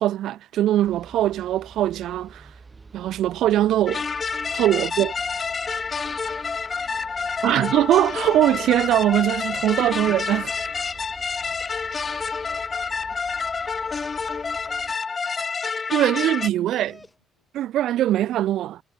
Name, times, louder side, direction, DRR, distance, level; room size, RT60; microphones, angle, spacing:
voice 1, 0.0-2.5 2.9-4.0 4.5-5.1 7.4-10.6 15.9-16.9 17.5-18.8, right 13 dB, 60° right, 0.3 m, -21 dB
sound 1, 0.8-14.9, right 4 dB, 30° right, 4.4 m, -48 dB
sound 2, 3.9-16.5, left 5 dB, 35° left, 0.6 m, -28 dB
voice 2, 6.0-7.8 11.1-16.2 16.5-17.9, left 2 dB, 90° left, 4.9 m, -63 dB
Dog, 12.9-17.5, left 2 dB, 15° left, 3.9 m, -58 dB
figure-of-eight pair, 45°, 0 cm